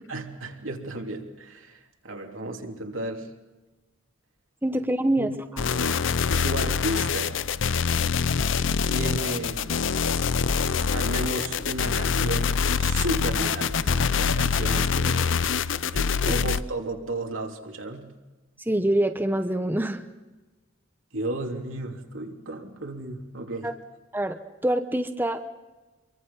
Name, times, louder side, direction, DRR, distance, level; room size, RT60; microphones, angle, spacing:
voice 1, 0.1-3.3 5.2-5.3 6.4-7.4 8.9-9.8 10.9-15.4 15.9-18.1 21.1-23.7, right 2 dB, 80° right, 2 dB, 3.1 m, -33 dB
voice 2, 4.6-5.3 16.2-16.4 18.7-20.0 23.6-23.7 24.1-25.4, right 1 dB, 10° right, 7 dB, 1.0 m, -25 dB
sound 1, 5.6-16.6, left 6 dB, 65° left, 0.6 m, -25 dB
27.0 x 23.0 x 5.6 m, 1.2 s
head